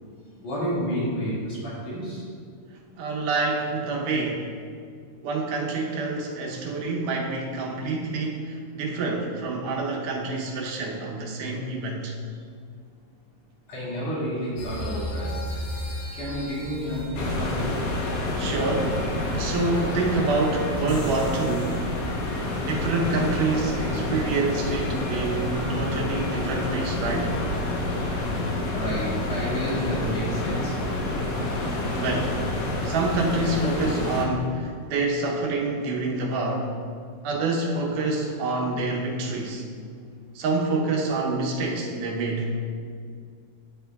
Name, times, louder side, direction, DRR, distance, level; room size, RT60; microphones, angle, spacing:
voice 1, 0.4-2.2 13.7-15.3 16.1-17.7 28.7-30.8, equal, 55° left, -8 dB, 3.3 m, -30 dB
voice 2, 3.0-4.5 5.2-12.1 15.2-15.4 18.4-19.0 19.3-21.8 22.6-27.3 31.9-32.4 32.8-36.7 37.2-39.6 40.4-42.5, right 3 dB, 80° right, -1 dB, 2.4 m, -27 dB
sound 1, 14.6-28.5, equal, 90° left, 1.0 m, -38 dB
sound 2, 17.2-34.3, left 2 dB, 70° left, 2.4 m, -28 dB
10.0 x 8.2 x 2.3 m, 2.2 s
omnidirectional pair, 3.7 m